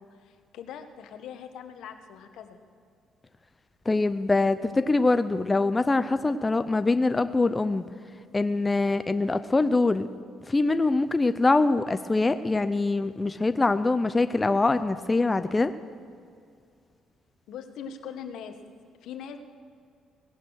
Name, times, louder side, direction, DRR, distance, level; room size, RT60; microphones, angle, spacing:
voice 1, 0.0-2.6 17.5-18.6 19.0-19.4, left 8 dB, 80° left, 7 dB, 1.2 m, -41 dB
voice 2, 3.9-7.8 8.3-10.1 10.5-15.7, left 3 dB, 20° left, 11 dB, 0.5 m, -24 dB
17.5 x 11.0 x 6.3 m, 2.3 s
cardioid pair, 100°, 0 cm